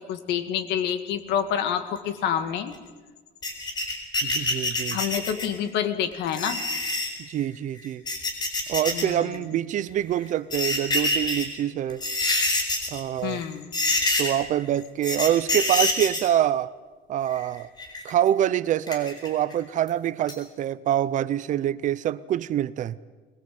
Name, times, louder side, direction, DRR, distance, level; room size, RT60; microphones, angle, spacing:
voice 1, 0.0-2.7 4.9-6.6 8.9-9.5 13.2-13.7, left 9 dB, 70° left, 9 dB, 2.1 m, -28 dB
sound 1, 3.4-5.6 6.3-7.1 7.8-9.0 9.3-9.4 10.3-11.5 11.9-13.0 13.3-13.5 13.7-14.5 15.0-16.3 17.3-18.1 18.9-19.5 19.9-20.0 20.3-20.4, left 2 dB, 25° left, 4.3 m, -26 dB
voice 2, 4.2-5.0 7.2-8.0 8.7-12.0 12.9-13.4 14.2-16.7 17.1-17.7 18.0-23.0, right 11 dB, 45° right, 17 dB, 0.7 m, -25 dB
22.0 x 21.5 x 7.8 m, 1.3 s
cardioid pair, 150°, 18 cm